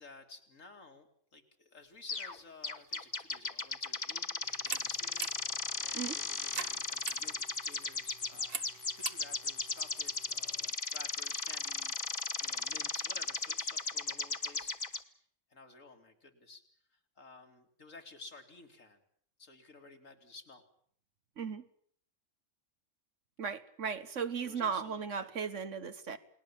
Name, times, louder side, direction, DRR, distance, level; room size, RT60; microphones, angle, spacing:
voice 1, 0.0-4.3 4.6-8.6 8.9-15.2 15.5-16.6 16.9-19.0 19.4-20.6 24.4-25.3, left 3 dB, 85° left, 5 dB, 3.2 m, -54 dB
sound 1, 2.1-2.4 2.6-15.0, left 4 dB, 35° left, 1.3 m, -36 dB
sound 2, 4.4-10.7, right 5 dB, 50° right, 1.4 m, -45 dB
voice 2, 23.4-26.2, right 6 dB, 70° right, 12 dB, 1.7 m, -36 dB
29.5 x 20.0 x 7.3 m, 0.63 s
omnidirectional pair, 1.3 m